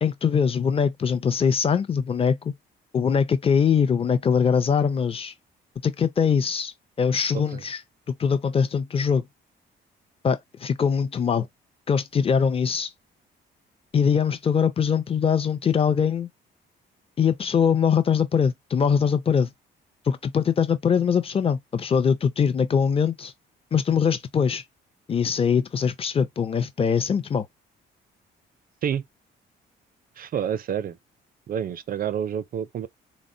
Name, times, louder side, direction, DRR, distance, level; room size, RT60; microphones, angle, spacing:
voice 1, 0.0-2.5 2.9-5.3 5.8-7.8 8.2-9.2 10.2-11.5 11.9-12.9 13.9-16.3 17.2-19.5 20.1-23.3 23.7-24.6 25.1-27.5, left 6 dB, 30° left, 0.5 m, -22 dB
voice 2, 30.2-31.0 31.5-32.9, right 8 dB, 45° right, 0.4 m, -28 dB
3.5 x 2.1 x 2.6 m
cardioid pair, 90°, 20 cm